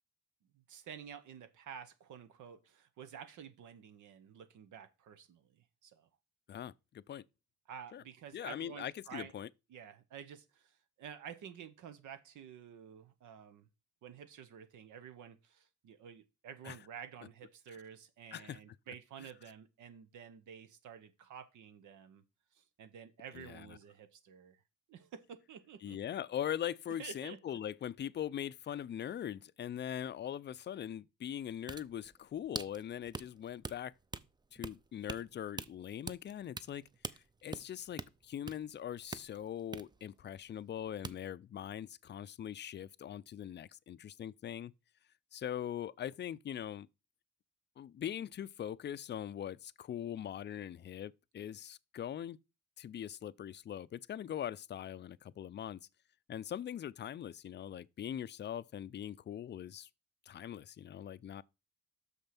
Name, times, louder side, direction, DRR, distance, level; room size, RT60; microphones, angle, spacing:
voice 1, 0.5-6.1 7.7-9.3 9.7-13.7 14.0-22.2 22.5-24.6 24.9-26.0 27.0-27.4, right 8 dB, 80° right, 1.0 m, -51 dB
voice 2, 6.5-7.2 7.9-8.0 8.3-9.5 16.6-16.8 17.7-17.8 18.3-18.6 23.3-23.8 25.8-33.9 34.5-44.7 45.3-46.9 47.8-52.4 52.8-55.8 56.3-59.9 60.3-61.4, left 10 dB, 35° left, 0.4 m, -41 dB
sound 1, 31.4-40.8 41.0-41.2, right 4 dB, 15° right, 0.5 m, -45 dB
6.4 x 5.4 x 5.9 m
cardioid pair, 90°, 30 cm